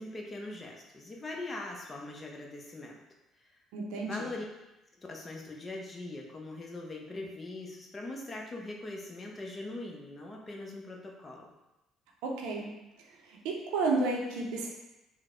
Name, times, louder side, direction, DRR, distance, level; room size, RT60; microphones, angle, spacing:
voice 1, 0.0-3.0 3.4-3.6 4.0-4.5 5.0-11.5, left 2 dB, 30° left, 0 dB, 0.7 m, -41 dB
voice 2, 3.7-4.2 12.2-12.7 13.2-14.7, right 3 dB, 85° right, 0 dB, 0.6 m, -31 dB
3.8 x 2.1 x 3.0 m, 0.98 s
supercardioid pair, 75°, 0 cm